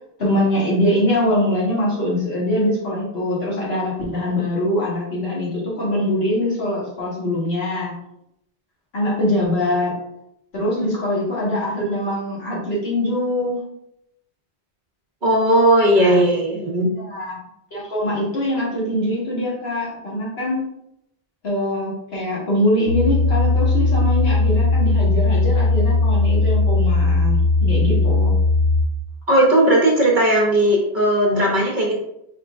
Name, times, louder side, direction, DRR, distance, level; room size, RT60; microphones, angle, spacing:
voice 1, 0.2-7.9 8.9-9.9 10.5-13.6 16.0-16.2 16.9-17.4 17.7-20.6 21.4-28.3, left 1 dB, 80° left, -5 dB, 1.8 m, -23 dB
voice 2, 15.2-16.9 29.3-31.9, right 1 dB, 55° right, -3 dB, 1.0 m, -17 dB
sound 1, 22.9-28.8, left 3 dB, 45° left, 0.9 m, -18 dB
4.5 x 3.5 x 2.5 m, 0.78 s
omnidirectional pair, 1.0 m